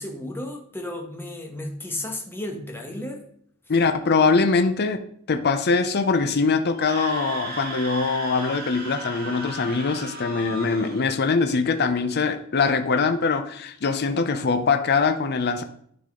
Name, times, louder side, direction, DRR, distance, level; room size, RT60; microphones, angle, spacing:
voice 1, 0.0-3.2, left 1 dB, 10° left, 1.2 m, -33 dB
voice 2, 3.7-5.0 5.3-15.6, left 4 dB, 50° left, 0.6 m, -22 dB
Screaming, 6.7-11.0, right 2 dB, 45° right, 2.3 m, -35 dB
10.5 x 4.0 x 3.7 m
head